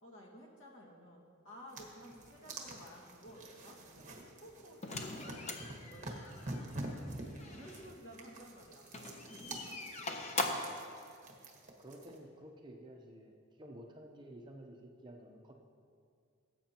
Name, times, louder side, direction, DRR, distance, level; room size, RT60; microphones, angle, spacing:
voice 1, 0.0-5.5 5.9-10.1, equal, 60° left, -2 dB, 2.0 m, -55 dB
sound 1, 1.7-12.2, right 1 dB, 35° right, 1.4 m, -47 dB
sound 2, 4.8-7.9 8.8-10.8, left 3 dB, 30° left, 0.8 m, -41 dB
voice 2, 11.8-15.5, right 1 dB, 20° right, 1 dB, 0.7 m, -52 dB
18.5 x 8.3 x 3.0 m, 2.3 s
head